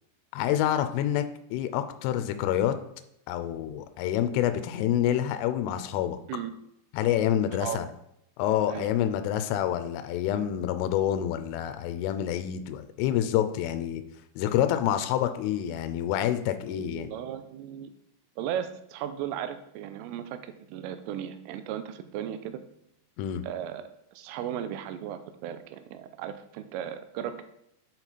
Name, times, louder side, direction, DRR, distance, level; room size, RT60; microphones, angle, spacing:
voice 1, 0.3-1.2 1.5-2.7 3.3-6.2 6.9-7.9 8.4-14.0 14.4-17.1 23.2-23.4, left 11 dB, 85° left, 10 dB, 3.1 m, -27 dB
voice 2, 16.7-17.9 18.4-22.6 23.4-23.8 24.1-27.4, right 10 dB, 90° right, 10 dB, 3.1 m, -36 dB
7.9 x 4.5 x 4.1 m, 0.78 s
omnidirectional pair, 5.7 m